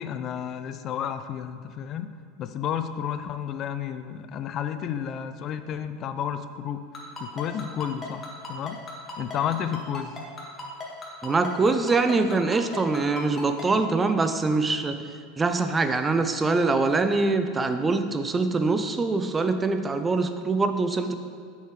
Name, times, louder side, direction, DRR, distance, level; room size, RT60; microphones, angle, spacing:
voice 1, 0.0-2.1 2.4-6.8 7.2-8.8 9.2-10.2, left 9 dB, 45° left, 10 dB, 0.4 m, -31 dB
Ringtone, 6.9-13.6, left 3 dB, 25° left, 1.9 m, -37 dB
voice 2, 11.2-15.0 15.4-21.1, right 3 dB, 20° right, 8 dB, 0.5 m, -24 dB
8.0 x 6.4 x 3.2 m, 2.2 s
hypercardioid pair, 85°, 0 cm